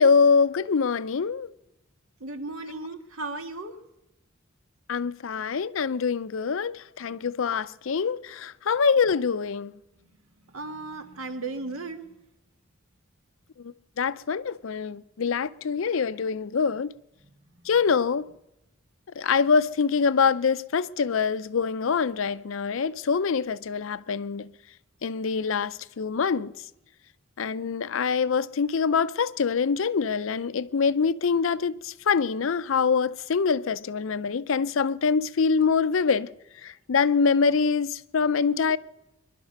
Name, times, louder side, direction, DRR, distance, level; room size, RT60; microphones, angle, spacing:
voice 1, 0.0-1.5 4.9-9.7 13.6-16.9 17.7-18.3 19.2-24.5 25.0-26.5 27.4-36.3 36.6-38.8, left 5 dB, 70° left, 0.5 m, -24 dB
voice 2, 2.2-3.7 10.0-10.1 10.5-12.1, right 3 dB, 85° right, 1.6 m, -35 dB
23.5 x 11.5 x 5.3 m
head